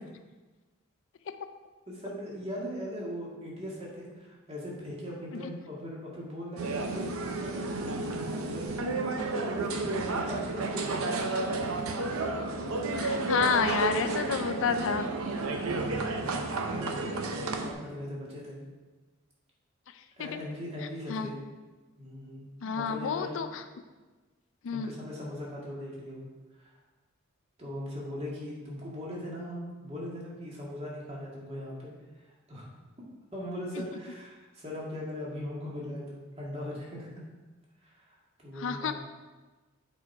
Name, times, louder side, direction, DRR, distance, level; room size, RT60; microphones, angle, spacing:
voice 1, 1.9-8.9 9.3-10.9 16.7-18.6 20.2-21.4 22.0-23.3 24.7-26.3 26.6-26.7 27.6-31.9 32.5-32.6 33.3-37.2 37.8-38.9, equal, 30° right, -4 dB, 1.8 m, -40 dB
sound 1, 6.6-17.7, right 3 dB, 85° right, 0.7 m, -31 dB
voice 2, 12.9-15.1 20.2-20.4 21.1-21.3 22.6-23.6 24.6-24.9 38.6-38.9, left 6 dB, 65° left, 9 dB, 0.4 m, -30 dB
7.4 x 4.3 x 4.6 m, 1.2 s
head